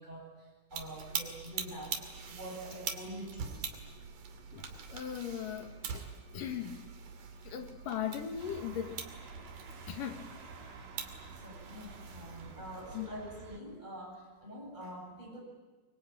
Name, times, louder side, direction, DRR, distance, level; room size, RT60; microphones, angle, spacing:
voice 1, 0.0-3.7 11.3-15.4, right 1 dB, 10° right, -1 dB, 8.1 m, -46 dB
sound 1, 0.7-13.1, right 6 dB, 55° right, 3.7 m, -44 dB
voice 2, 4.5-6.1 6.3-6.8 7.4-9.0 9.9-10.2 12.9-13.1, left 9 dB, 60° left, 6 dB, 3.2 m, -38 dB
sound 2, 8.4-13.6, right 4 dB, 85° right, 6.2 m, -51 dB
25.0 x 24.5 x 8.9 m, 1.2 s
omnidirectional pair, 4.6 m